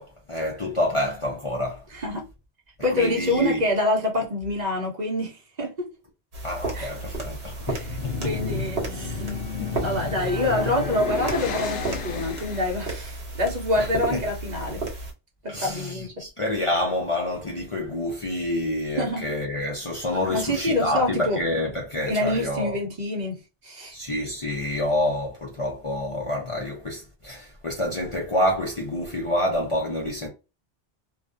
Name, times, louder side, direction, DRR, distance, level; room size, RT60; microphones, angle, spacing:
voice 1, 0.0-1.8 2.9-3.6 6.4-8.3 9.6-10.1 13.8-14.2 15.5-22.8 23.9-30.3, left 1 dB, 40° left, 0.5 m, -28 dB
voice 2, 1.9-2.3 2.8-5.9 6.7-6.9 7.7-8.0 8.2-9.3 9.8-14.8 15.4-16.3 19.0-19.2 20.3-21.4 22.0-23.9, left 1 dB, 50° right, 0.7 m, -26 dB
sound 1, 6.3-15.1, right 2 dB, 70° right, 1.0 m, -33 dB
sound 2, 7.5-12.9, left 5 dB, 75° left, 0.8 m, -32 dB
2.4 x 2.1 x 2.4 m
omnidirectional pair, 1.1 m